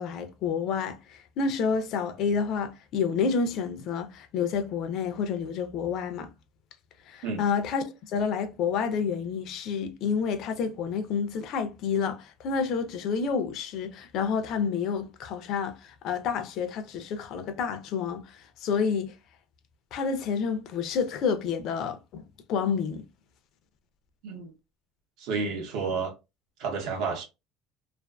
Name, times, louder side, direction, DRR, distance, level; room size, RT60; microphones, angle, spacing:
voice 1, 0.0-6.3 7.1-19.1 19.9-23.0, left 6 dB, 50° left, 0.4 m, -29 dB
voice 2, 24.2-24.5 25.2-26.1 26.6-27.2, right 5 dB, 65° right, 0.7 m, -30 dB
2.5 x 2.4 x 2.2 m
cardioid pair, 155°, 0 cm